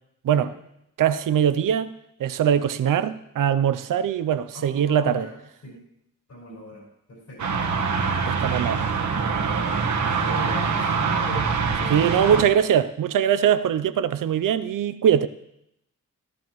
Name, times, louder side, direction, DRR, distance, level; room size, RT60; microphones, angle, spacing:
voice 1, 1.0-1.9 2.2-5.3 8.3-8.9 11.9-15.3, right 9 dB, 85° right, 0.6 m, -22 dB
voice 2, 4.5-5.3 5.6-5.8 6.3-6.8 7.1-7.6 10.2-11.4 11.8-12.1, left 2 dB, 60° left, 5.6 m, -37 dB
sound 1, 7.4-12.4, right 5 dB, 65° right, 1.2 m, -24 dB
14.5 x 13.5 x 3.1 m
wide cardioid pair, 145°, 32 cm